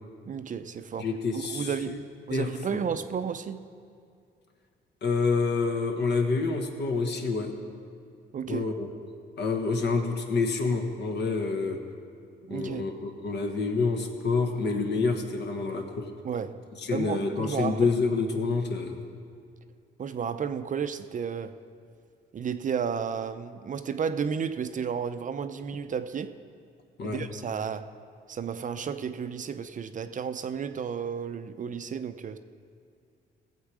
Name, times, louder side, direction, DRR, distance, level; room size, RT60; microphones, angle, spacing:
voice 1, 0.3-1.1 1.5-3.7 8.3-8.7 12.4-12.9 16.2-16.6 16.9-17.9 20.0-21.6 22.3-26.4 27.0-27.9 28.3-32.4, right 7 dB, 40° right, 11 dB, 0.5 m, -32 dB
voice 2, 1.0-2.0 2.3-2.5 5.0-7.5 8.5-8.9 9.4-11.8 12.5-16.1 16.8-19.0 27.0-27.2, left 4 dB, 60° left, 4 dB, 1.3 m, -28 dB
16.0 x 7.4 x 4.8 m, 2.4 s
cardioid pair, 90°, 20 cm